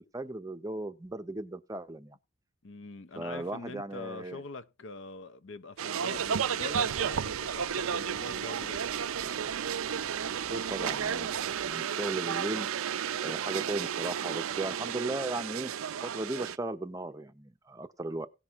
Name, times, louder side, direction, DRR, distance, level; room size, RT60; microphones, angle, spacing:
voice 1, 0.0-2.2 3.2-4.4 10.3-11.3 11.6-12.7 13.2-15.7 16.0-18.3, right 2 dB, 15° right, 0.6 m, -36 dB
voice 2, 2.6-9.1, left 3 dB, 60° left, 0.7 m, -43 dB
sound 1, 5.8-16.6, right 8 dB, 85° right, 0.5 m, -32 dB
sound 2, 6.1-11.7, left 3 dB, 90° left, 1.0 m, -54 dB
17.0 x 6.0 x 3.5 m
head